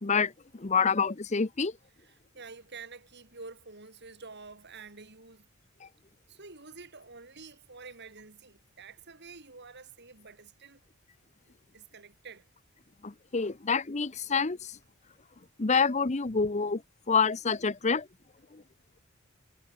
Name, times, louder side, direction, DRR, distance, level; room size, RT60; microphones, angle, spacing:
voice 1, 0.0-1.7 5.8-5.9 13.0-14.8 15.6-16.8 17.1-18.1 18.5-18.6, left 5 dB, 30° left, 0.7 m, -27 dB
voice 2, 2.0-5.5 6.3-10.8 11.7-12.5, right 4 dB, 50° right, 3.7 m, -48 dB
head